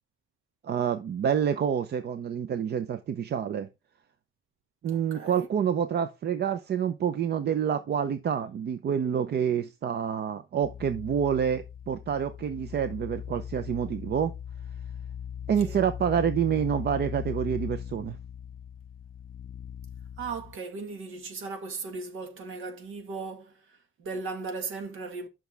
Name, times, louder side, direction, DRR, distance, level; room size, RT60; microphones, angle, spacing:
voice 1, 0.6-3.7 4.8-14.3 15.5-18.2, right 8 dB, 55° right, 0.7 m, -28 dB
voice 2, 4.9-5.5 15.6-15.8 20.2-25.3, right 4 dB, 80° right, 2.0 m, -37 dB
sound 1, 10.6-20.6, left 9 dB, 45° left, 0.4 m, -39 dB
10.5 x 6.1 x 3.3 m
cardioid pair, 125°, 21 cm